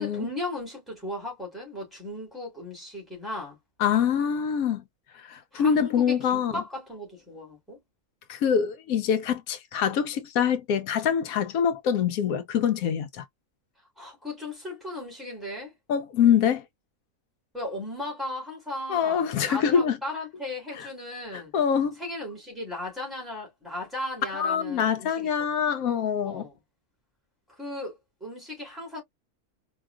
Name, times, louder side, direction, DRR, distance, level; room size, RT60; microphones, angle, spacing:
voice 1, 0.0-3.6 5.5-7.8 14.0-15.7 17.5-21.5 22.0-25.6 26.2-26.6 27.6-27.9 28.2-29.0, left 1 dB, ahead, 3.0 m, -36 dB
voice 2, 3.8-4.8 5.3-6.6 8.3-13.2 15.9-16.6 18.9-20.0 20.8-20.9 21.5-22.0 24.3-26.4, left 8 dB, 85° left, 1.1 m, -25 dB
4.7 x 2.8 x 2.3 m
omnidirectional pair, 1.5 m